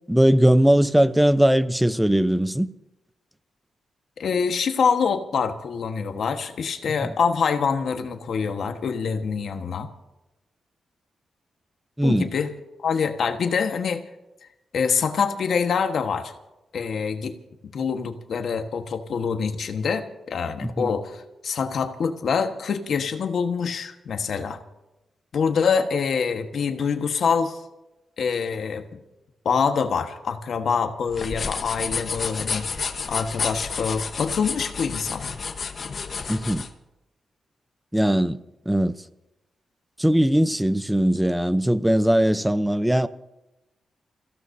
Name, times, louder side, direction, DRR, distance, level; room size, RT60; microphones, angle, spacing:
voice 1, 0.1-2.7 7.0-7.1 12.0-12.3 20.6-20.9 36.3-36.6 37.9-38.9 40.0-43.1, right 1 dB, 5° right, 0.8 m, -20 dB
voice 2, 4.2-9.9 12.0-12.5 12.8-14.0 14.7-16.3 16.7-17.3 17.7-24.6 25.3-27.6 28.2-28.8 29.4-32.7 33.1-35.3, left 6 dB, 70° left, 1.4 m, -25 dB
sound 1, 31.1-36.7, left 5 dB, 50° left, 1.2 m, -30 dB
29.0 x 16.0 x 2.8 m
cardioid pair, 80°, 0 cm